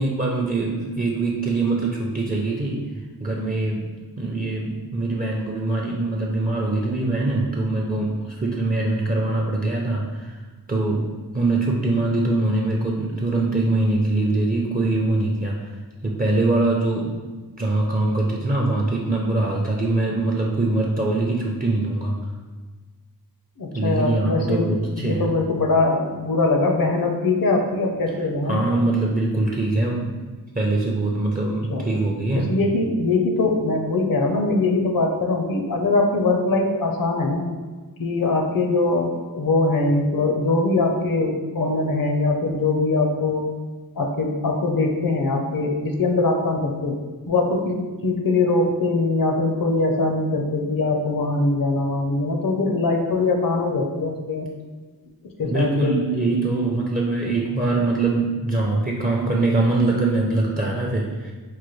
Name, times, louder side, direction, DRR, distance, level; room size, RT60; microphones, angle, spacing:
voice 1, 0.0-2.8 3.2-10.4 10.7-11.1 11.3-15.7 16.0-17.1 17.6-22.2 23.7-25.3 28.5-30.1 30.5-32.5 55.4-61.3, right 2 dB, 25° right, -2 dB, 0.5 m, -23 dB
voice 2, 23.6-28.6 31.7-31.9 32.3-37.5 38.0-43.5 44.0-47.0 47.3-54.5 55.4-56.0, left 3 dB, 65° left, 2 dB, 0.6 m, -22 dB
4.7 x 2.2 x 3.1 m, 1.4 s
wide cardioid pair, 60°, 37 cm